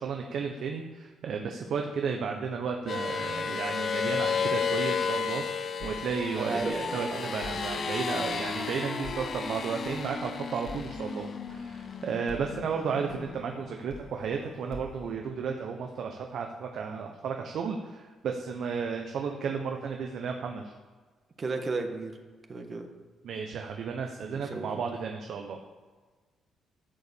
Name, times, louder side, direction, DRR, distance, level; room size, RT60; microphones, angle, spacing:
voice 1, 0.0-20.7 23.2-25.6, right 5 dB, 65° right, 3 dB, 1.1 m, -33 dB
sound 1, 2.9-13.7, left 6 dB, 50° left, 1.0 m, -33 dB
sound 2, 5.8-15.1, left 2 dB, 70° left, 2.5 m, -49 dB
voice 2, 6.4-7.3 21.4-22.1 22.5-22.9 24.3-24.8, right 3 dB, 40° right, 4 dB, 1.7 m, -34 dB
12.5 x 7.1 x 7.1 m, 1.4 s
cardioid pair, 90°, 0 cm